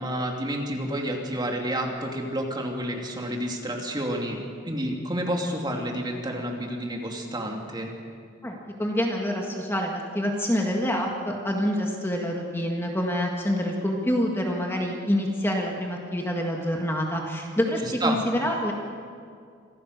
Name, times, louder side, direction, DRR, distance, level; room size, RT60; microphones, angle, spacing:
voice 1, 0.0-4.4 4.6-7.9 17.8-18.2, right 1 dB, 25° right, 1 dB, 2.6 m, -30 dB
voice 2, 8.4-18.7, equal, 15° left, 0 dB, 1.8 m, -27 dB
26.5 x 16.0 x 6.7 m, 2.2 s
head